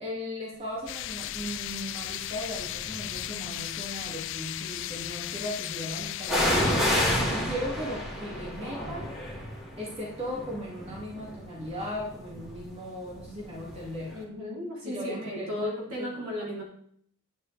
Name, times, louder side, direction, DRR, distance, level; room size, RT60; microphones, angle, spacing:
voice 1, 0.0-9.0 9.8-14.1 14.8-15.7 16.0-16.1, equal, 25° right, -4 dB, 2.3 m, -37 dB
sound 1, 0.9-6.8, left 14 dB, 55° left, 0.3 m, -36 dB
sound 2, 1.3-1.7 2.4-3.4 6.3-13.9 14.2-14.3, left 1 dB, ahead, 2.1 m, -30 dB
voice 2, 14.1-16.6, left 1 dB, 80° right, -4 dB, 3.7 m, -35 dB
9.5 x 9.4 x 3.4 m, 0.67 s
head